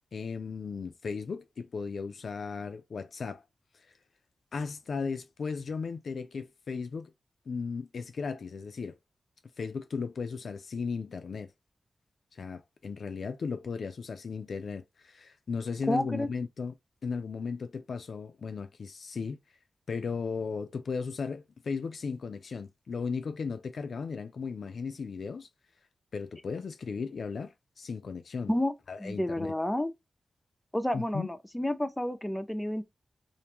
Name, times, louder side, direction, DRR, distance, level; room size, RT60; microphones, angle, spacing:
voice 1, 0.1-3.4 4.5-7.1 7.5-9.0 9.6-11.5 12.3-16.7 17.0-19.4 19.9-25.5 26.1-28.5 28.9-29.5 30.9-31.3, left 5 dB, 70° left, 0.3 m, -36 dB
voice 2, 15.9-16.3 28.5-28.7 29.0-29.9 30.7-32.8, left 1 dB, 10° left, 0.5 m, -30 dB
2.5 x 2.2 x 2.9 m
cardioid pair, 60°, 0 cm